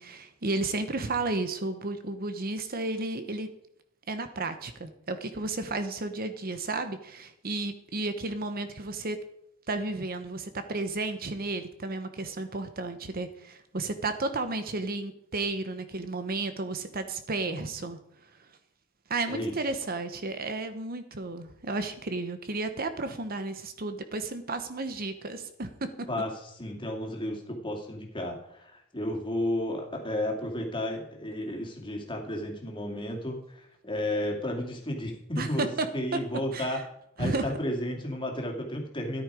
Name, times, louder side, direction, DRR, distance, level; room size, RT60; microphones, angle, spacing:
voice 1, 0.0-3.5 4.1-9.2 9.7-18.0 19.1-25.7 35.4-35.9 36.5-36.8 37.2-37.5, right 3 dB, 45° right, 9 dB, 1.0 m, -33 dB
voice 2, 26.1-35.7 35.9-36.8 37.2-39.2, left 1 dB, 25° left, 1 dB, 2.6 m, -32 dB
13.5 x 10.5 x 5.0 m, 0.76 s
head